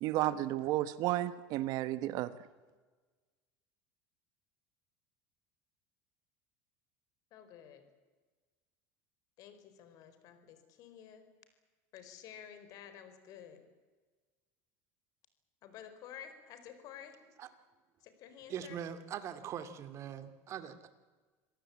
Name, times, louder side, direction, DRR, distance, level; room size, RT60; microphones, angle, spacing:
voice 1, 0.0-2.3, right 15 dB, 55° right, 14 dB, 1.1 m, -32 dB
voice 2, 7.3-7.8 9.4-11.2 11.9-13.6 15.6-17.2 18.0-18.8, left 9 dB, 55° left, 9 dB, 4.5 m, -51 dB
voice 3, 18.5-20.9, right 9 dB, 40° right, 11 dB, 2.4 m, -42 dB
27.0 x 17.5 x 8.5 m, 1.3 s
supercardioid pair, 130°, 7 cm